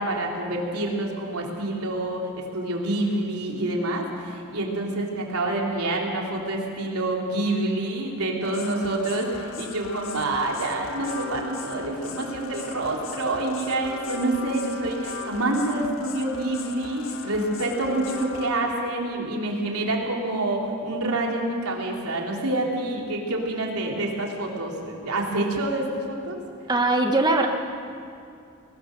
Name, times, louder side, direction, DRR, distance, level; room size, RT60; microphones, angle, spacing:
voice 1, 0.0-26.4, right 2 dB, 80° right, -1 dB, 3.6 m, -27 dB
sound 1, 8.4-18.5, left 5 dB, 65° left, 1.5 m, -38 dB
voice 2, 26.7-27.5, right 2 dB, 20° right, 3 dB, 1.0 m, -20 dB
21.0 x 20.0 x 6.7 m, 2.5 s
head